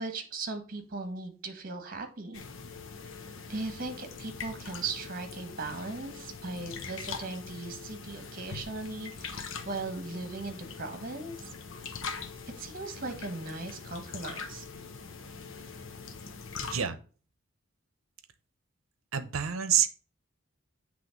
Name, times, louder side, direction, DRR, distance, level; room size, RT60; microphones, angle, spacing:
voice 1, 0.0-2.4 3.5-11.5 11.9-12.0 12.6-14.6, right 3 dB, 45° right, 6 dB, 1.3 m, -38 dB
sound 1, 2.3-16.8, left 5 dB, 65° left, 0.8 m, -42 dB
voice 2, 16.6-17.0 19.1-19.9, right 9 dB, 80° right, 11 dB, 0.7 m, -27 dB
7.9 x 3.3 x 5.1 m, 0.39 s
head